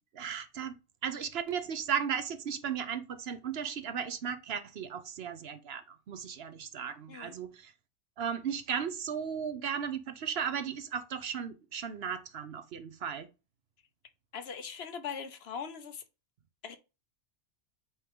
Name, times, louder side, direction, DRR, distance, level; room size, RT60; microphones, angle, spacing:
voice 1, 0.1-7.7 8.2-13.3, right 7 dB, 65° right, 0.9 m, -36 dB
voice 2, 14.3-16.0 16.6-16.8, left 6 dB, 65° left, 0.9 m, -40 dB
8.3 x 3.6 x 3.6 m
omnidirectional pair, 1.2 m